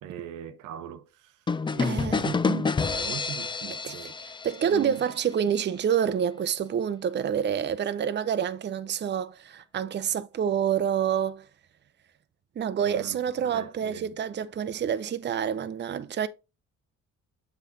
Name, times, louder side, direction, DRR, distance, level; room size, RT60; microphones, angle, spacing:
voice 1, 0.0-4.2 4.7-5.0 12.8-14.2, right 9 dB, 90° right, 0.8 m, -40 dB
sound 1, 1.5-5.2, left 4 dB, 15° left, 0.3 m, -29 dB
voice 2, 1.8-2.3 3.8-3.9 4.4-11.5 12.6-16.3, right 8 dB, 35° right, 0.6 m, -27 dB
7.2 x 4.0 x 3.8 m
cardioid pair, 90°, 30 cm